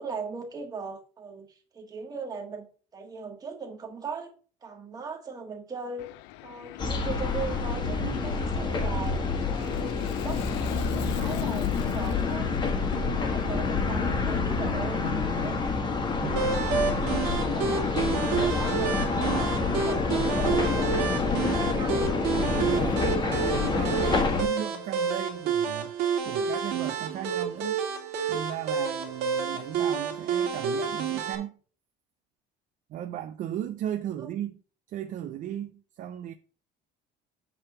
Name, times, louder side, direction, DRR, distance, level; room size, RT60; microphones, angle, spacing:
voice 1, 0.0-2.7 2.9-4.3 4.6-6.1 6.4-12.5 12.8-15.6 16.0-16.7 16.9-22.3 34.2-34.3, right 4 dB, 20° right, 1.7 m, -39 dB
Aircraft, 6.0-14.8, left 17 dB, 75° left, 0.5 m, -38 dB
sound 1, 6.8-24.4, left 4 dB, 25° left, 1.3 m, -27 dB
sound 2, 16.4-31.4, right 6 dB, 65° right, 2.6 m, -29 dB
voice 2, 17.0-17.4 22.5-25.9 26.2-27.8 28.3-31.6 32.9-34.6 34.9-36.3, right 11 dB, 45° right, 0.6 m, -36 dB
8.5 x 3.5 x 6.8 m
cardioid pair, 160°, 18 cm